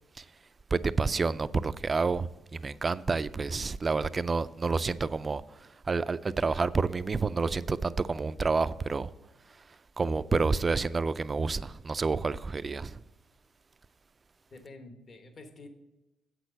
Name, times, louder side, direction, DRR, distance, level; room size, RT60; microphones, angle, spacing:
voice 1, 0.7-5.4 5.9-9.1 10.0-13.0, right 4 dB, 30° right, 0.4 m, -29 dB
voice 2, 14.5-15.7, left 2 dB, 45° left, 1.2 m, -48 dB
8.1 x 6.2 x 6.6 m
cardioid pair, 90°, 0 cm